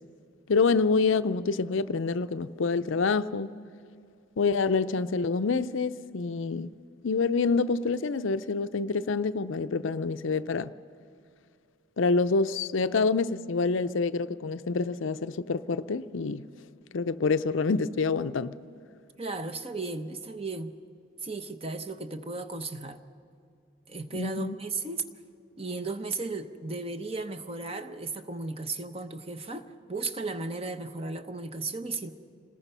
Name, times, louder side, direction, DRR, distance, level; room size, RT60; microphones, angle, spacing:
voice 1, 0.5-3.5 4.4-6.7 7.0-10.7 12.0-16.5 16.9-18.6 24.1-24.6, left 4 dB, 70° left, 0.5 m, -27 dB
voice 2, 19.2-20.7 21.2-23.0 23.9-25.0 25.6-32.1, right 3 dB, 30° right, 0.8 m, -35 dB
27.0 x 20.0 x 5.6 m
head